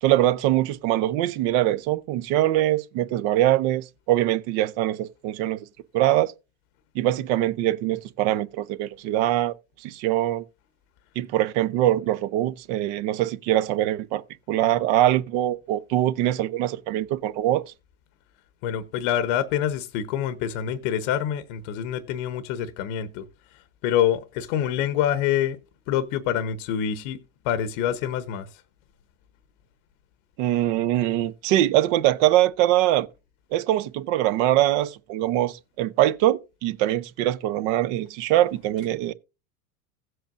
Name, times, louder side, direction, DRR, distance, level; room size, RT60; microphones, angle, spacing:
voice 1, 0.0-5.7 5.9-6.3 6.9-9.5 9.8-10.4 11.2-14.2 14.5-17.6 30.4-33.1 33.5-39.1, right 14 dB, 55° right, 0.8 m, -23 dB
voice 2, 18.6-23.3 23.5-25.6 25.9-28.6, left 10 dB, 60° left, 1.1 m, -26 dB
16.0 x 7.9 x 2.6 m
hypercardioid pair, 95°, 42 cm